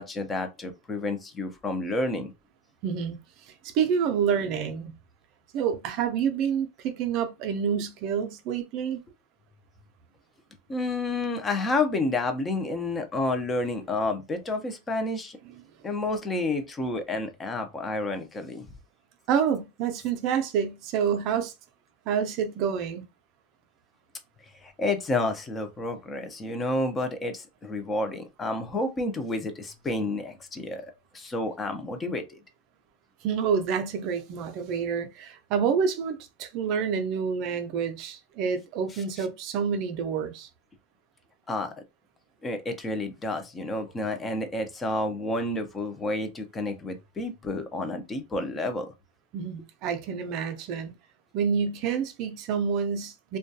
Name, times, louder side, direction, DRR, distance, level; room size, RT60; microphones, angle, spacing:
voice 1, 0.0-2.3 10.7-15.4 15.8-18.6 24.6-32.4 38.9-39.3 41.5-41.7 42.4-48.9, left 2 dB, 20° left, 0.5 m, -30 dB
voice 2, 2.8-3.2 3.6-4.9 5.5-9.0 19.3-21.5 22.1-23.1 33.2-40.5 49.3-50.9 51.3-53.4, right 7 dB, 50° right, 0.4 m, -28 dB
2.2 x 2.2 x 2.6 m
supercardioid pair, 135°, 0 cm